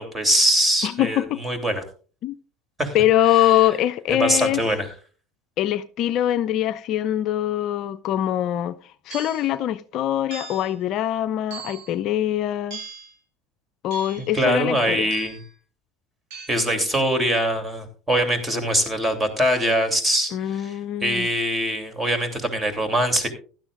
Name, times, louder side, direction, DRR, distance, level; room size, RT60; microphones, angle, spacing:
voice 1, 0.0-1.8 2.8-3.0 3.3-3.5 4.1-4.9 14.2-15.3 16.5-23.3, right 1 dB, 15° right, 3.1 m, -23 dB
voice 2, 0.8-1.4 2.2-2.3 2.9-4.6 5.6-8.8 9.1-12.8 13.8-15.1 20.3-21.3, left 12 dB, 50° left, 0.5 m, -23 dB
sound 1, 9.1-9.5 10.3-10.8 11.5-12.0 12.7-13.2 13.9-14.3 15.1-15.5 16.3-16.5, right 5 dB, 60° right, 6.8 m, -39 dB
16.0 x 12.0 x 2.5 m
hypercardioid pair, 80°, 0 cm